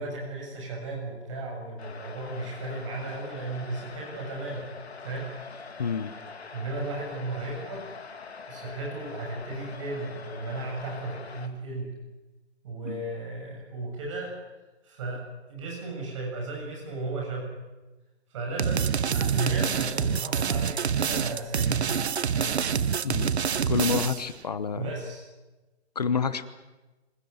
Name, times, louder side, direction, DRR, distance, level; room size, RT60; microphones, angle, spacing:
voice 1, 0.0-4.6 5.0-5.8 6.5-7.9 8.5-11.9 12.6-14.4 14.8-15.2 15.5-17.5 18.3-21.9 22.3-22.6 24.7-25.2, right 2 dB, 25° right, 0 dB, 7.1 m, -35 dB
sound 1, 1.8-11.5, left 5 dB, 65° left, 3.1 m, -44 dB
voice 2, 5.8-6.1 12.8-13.0 23.0-23.3 23.7-24.8 25.9-26.5, left 5 dB, 35° left, 13 dB, 1.1 m, -28 dB
sound 2, 18.6-24.3, right 7 dB, 70° right, 0.9 m, -27 dB
26.0 x 16.5 x 9.5 m, 1.1 s
hypercardioid pair, 170°, 34 cm